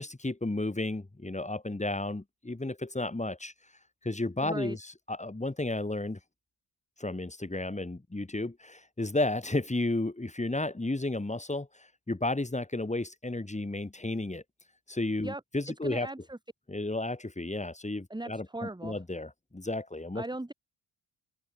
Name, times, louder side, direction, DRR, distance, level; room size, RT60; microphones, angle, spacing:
voice 1, 0.0-3.5 4.0-6.2 7.0-14.4 14.9-16.1 16.7-20.2, left 2 dB, 15° left, 8.0 m, -33 dB
voice 2, 4.4-4.8 15.2-15.4 15.8-16.4 18.1-19.0 20.1-20.5, right 2 dB, 10° right, 2.9 m, -38 dB
open air
wide cardioid pair, 125°, 48 cm